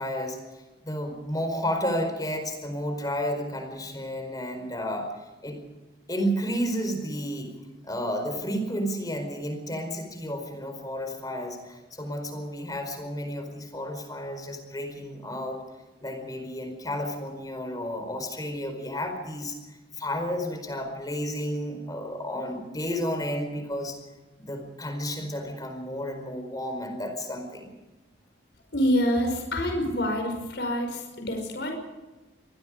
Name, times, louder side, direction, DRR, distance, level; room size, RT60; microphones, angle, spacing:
voice 1, 0.0-5.1 5.4-5.6 6.1-7.5 7.8-15.6 16.0-24.0 24.4-27.7, equal, 20° left, 5 dB, 4.7 m, -32 dB
voice 2, 28.7-31.7, equal, 70° left, 3 dB, 5.7 m, -26 dB
26.0 x 19.5 x 5.2 m, 1.1 s
head